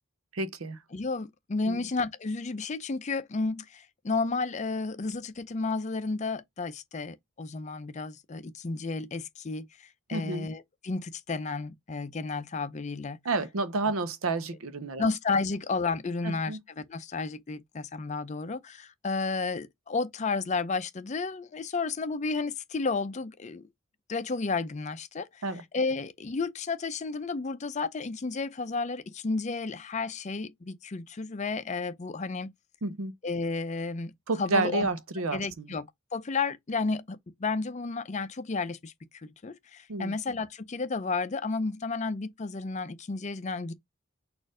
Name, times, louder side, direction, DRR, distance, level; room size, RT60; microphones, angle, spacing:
voice 1, 0.3-0.8 1.7-1.9 10.1-10.5 13.2-15.1 16.2-16.6 25.4-25.6 32.8-33.1 34.3-35.7 39.9-40.1, right 3 dB, 90° right, 0.7 m, -30 dB
voice 2, 0.9-13.2 15.0-23.7 24.1-25.4 25.7-32.5 33.2-34.1 34.4-34.9 35.3-38.9 39.2-43.7, left 4 dB, 35° left, 0.5 m, -32 dB
4.3 x 2.5 x 4.8 m
head